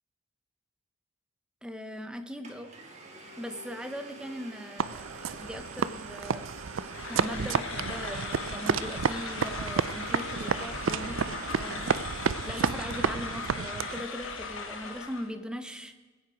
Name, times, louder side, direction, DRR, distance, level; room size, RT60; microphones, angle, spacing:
voice 1, 1.6-2.7 3.4-15.9, equal, 5° right, 7 dB, 0.8 m, -40 dB
Domestic sounds home sounds, 2.0-2.1 2.4-13.5, right 1 dB, 30° right, 1.8 m, -48 dB
sound 1, 4.8-14.1, right 6 dB, 65° right, 0.4 m, -31 dB
sound 2, 6.9-15.3, left 5 dB, 65° left, 1.3 m, -39 dB
20.0 x 8.9 x 5.0 m, 1.4 s
head